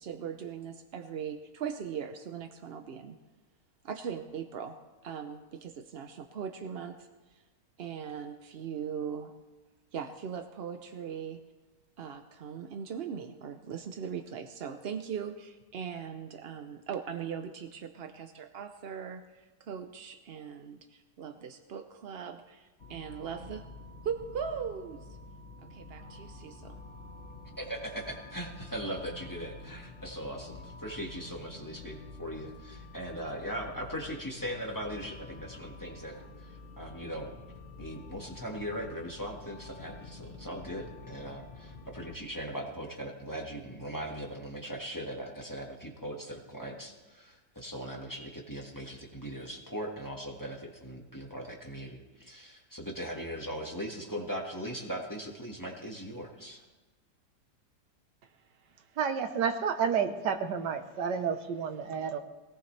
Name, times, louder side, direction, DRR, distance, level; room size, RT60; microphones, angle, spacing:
voice 1, 0.0-3.2 3.8-4.8 5.0-7.4 7.8-9.3 9.9-11.4 12.0-23.7 24.0-25.1 25.6-26.8, right 7 dB, 60° right, 7 dB, 0.6 m, -39 dB
sound 1, 22.8-42.2, left 3 dB, 40° left, 2.6 m, -48 dB
voice 2, 27.6-37.3 37.8-56.6, equal, 10° left, 0 dB, 1.6 m, -39 dB
voice 3, 59.0-62.2, right 7 dB, 90° right, 8 dB, 1.6 m, -30 dB
20.0 x 18.0 x 3.3 m, 1.2 s
omnidirectional pair, 1.8 m